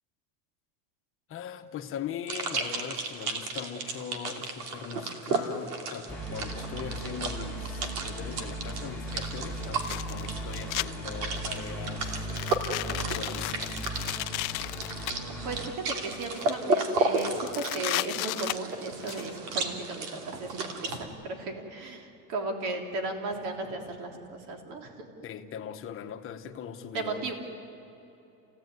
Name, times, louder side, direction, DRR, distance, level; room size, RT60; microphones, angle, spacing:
voice 1, 1.3-12.3 12.8-13.9 25.2-27.2, left 8 dB, 30° left, 7 dB, 1.2 m, -40 dB
sound 1, 2.3-21.0, right 3 dB, 90° right, 2.9 m, -34 dB
sound 2, 6.1-15.8, right 1 dB, 5° left, 1.7 m, -38 dB
sound 3, 8.3-8.4 9.6-10.9 11.4-11.7 12.2-15.1 15.9-16.5 16.8-16.9 17.2-19.2, left 23 dB, 65° left, 0.6 m, -34 dB
voice 2, 15.1-25.1 26.9-27.3, right 3 dB, 60° right, 4 dB, 3.5 m, -35 dB
28.0 x 17.0 x 9.5 m, 3.0 s
supercardioid pair, 150°, 46 cm